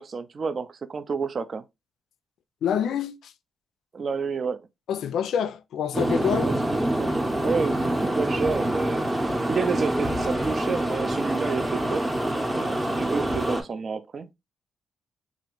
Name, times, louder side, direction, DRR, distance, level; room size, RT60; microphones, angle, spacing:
voice 1, 0.0-1.6 3.9-4.6 6.4-9.1 9.5-12.1 12.5-14.3, right 5 dB, 50° right, 0.4 m, -30 dB
voice 2, 2.6-3.3 4.9-6.5, left 8 dB, 80° left, 0.3 m, -27 dB
sound 1, 5.9-13.6, right 1 dB, 15° right, 0.7 m, -26 dB
2.9 x 2.4 x 3.0 m
cardioid pair, 80°, 0 cm